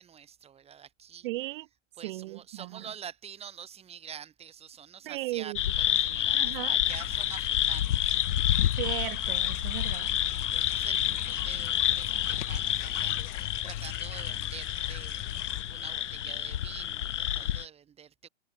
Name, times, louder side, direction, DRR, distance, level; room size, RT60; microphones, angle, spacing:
voice 1, 0.0-1.3 2.0-8.2 10.1-15.2 15.7-18.3, right 8 dB, 15° right, 5.6 m, -46 dB
voice 2, 1.2-1.7 2.0-2.9 5.0-5.6 6.3-6.7 8.8-10.1, right 19 dB, 45° right, 1.7 m, -36 dB
sound 1, 5.6-17.6, left 11 dB, 75° left, 1.2 m, -29 dB
sound 2, 6.9-15.6, left 40 dB or more, 25° left, 0.6 m, -40 dB
hypercardioid pair, 145°, 36 cm